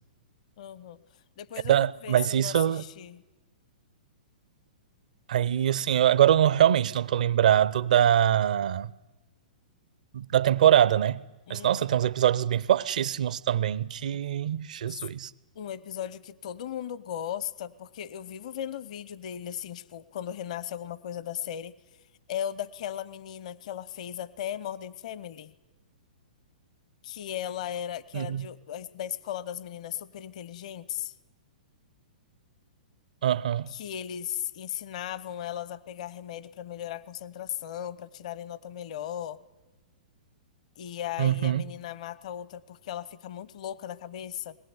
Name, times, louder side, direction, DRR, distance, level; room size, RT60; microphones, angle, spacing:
voice 1, 0.6-1.0 1.4-3.2 11.5-11.9 14.9-15.0 15.6-21.7 22.3-25.5 27.0-31.1 33.7-39.4 40.8-44.6, left 10 dB, 55° left, 0.8 m, -37 dB
voice 2, 1.7-2.8 5.3-8.9 10.1-11.2 11.5-15.3 28.1-28.5 33.2-33.7 41.2-41.6, right 10 dB, 65° right, 0.6 m, -23 dB
22.5 x 17.0 x 9.7 m
figure-of-eight pair, 110°, 4 cm